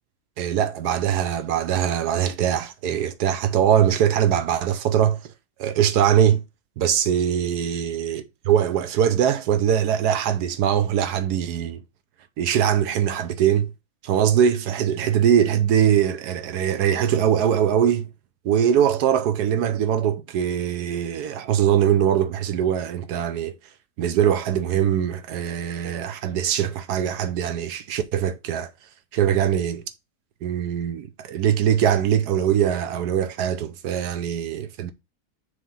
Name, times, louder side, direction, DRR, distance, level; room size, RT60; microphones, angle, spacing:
voice 1, 0.4-5.3 5.6-6.4 6.8-11.8 12.4-13.7 14.0-18.1 18.4-23.5 24.0-28.7 29.1-29.8 30.4-34.9, right 9 dB, 85° right, 1.3 m, -22 dB
6.6 x 3.2 x 5.5 m
omnidirectional pair, 1.7 m